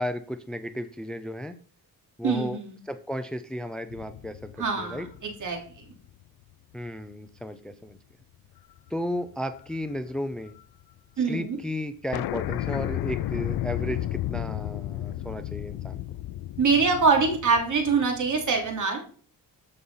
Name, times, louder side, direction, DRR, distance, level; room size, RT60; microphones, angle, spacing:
voice 1, 0.0-1.5 2.2-2.6 2.8-5.1 6.7-8.0 8.9-10.5 11.2-16.0, left 1 dB, ahead, 10 dB, 0.5 m, -34 dB
voice 2, 2.2-2.7 4.6-5.8 11.2-11.6 16.6-19.0, right 4 dB, 55° right, 2 dB, 3.2 m, -24 dB
sound 1, 3.9-6.5 7.0-7.1 8.6-8.9 9.2-10.6 10.9-11.0 11.2-11.3 11.6-11.7 12.1-18.8, left 13 dB, 80° left, 0.6 m, -33 dB
13.5 x 5.5 x 5.6 m, 0.43 s
wide cardioid pair, 150°, 37 cm